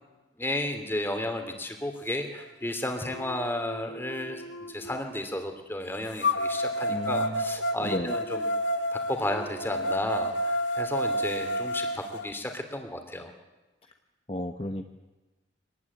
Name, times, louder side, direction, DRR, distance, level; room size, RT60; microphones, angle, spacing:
voice 1, 0.4-4.4 4.7-8.5 8.9-13.3, left 1 dB, 10° left, 5 dB, 2.8 m, -33 dB
sound 1, 2.4-2.5 3.1-5.0 6.2-12.2, equal, 80° left, 1.7 m, -30 dB
voice 2, 6.9-7.4 7.8-8.1 14.3-14.9, left 1 dB, 30° left, 5 dB, 1.1 m, -33 dB
24.0 x 19.5 x 9.7 m, 1.2 s
head